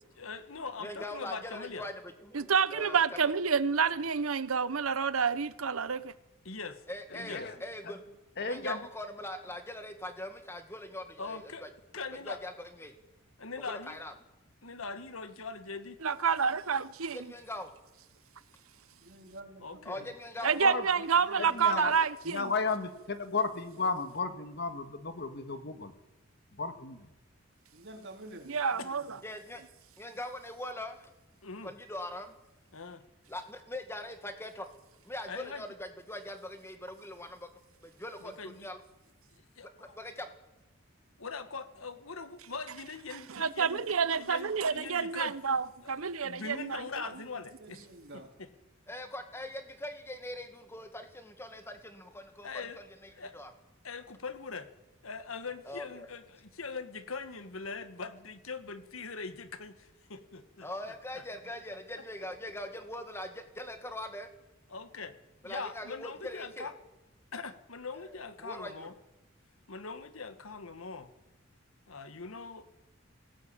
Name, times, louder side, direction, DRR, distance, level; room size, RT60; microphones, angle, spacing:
voice 1, 0.2-1.9 6.4-6.8 7.1-7.5 11.2-11.6 11.9-12.4 13.4-14.0 14.6-16.0 19.6-20.1 28.8-29.0 31.4-31.7 32.7-33.0 35.2-35.6 38.2-38.7 39.6-39.7 41.2-45.3 45.8-47.8 48.1-48.5 52.4-52.8 53.2-53.4 53.8-54.7 55.0-61.2 62.4-62.5 64.7-65.1 65.4-66.7 67.3-68.9 69.7-71.1 71.9-72.7, left 4 dB, 80° left, 1.6 m, -42 dB
voice 2, 0.8-3.2 6.9-8.0 8.4-11.7 12.0-13.0 13.7-14.1 17.1-17.7 19.9-20.8 21.7-22.0 29.2-29.6 30.0-31.1 31.6-32.4 33.3-34.7 35.0-37.5 37.8-38.8 40.0-40.1 48.9-52.5 52.8-53.5 55.7-56.1 60.6-64.3 65.4-66.7 67.9-68.9, left 1 dB, 10° left, 1.9 m, -42 dB
voice 3, 2.3-6.1 16.0-17.2 20.4-22.4 28.5-29.2 43.3-47.1, right 6 dB, 90° right, 0.9 m, -29 dB
voice 4, 7.1-7.6 8.4-8.9 20.4-21.0 21.4-21.9 22.3-25.9 26.5-27.1, left 4 dB, 50° left, 1.9 m, -34 dB
voice 5, 18.9-20.1 21.2-21.9 27.7-29.2 47.1-48.3, right 1 dB, 55° right, 3.6 m, -50 dB
21.0 x 17.5 x 8.8 m
head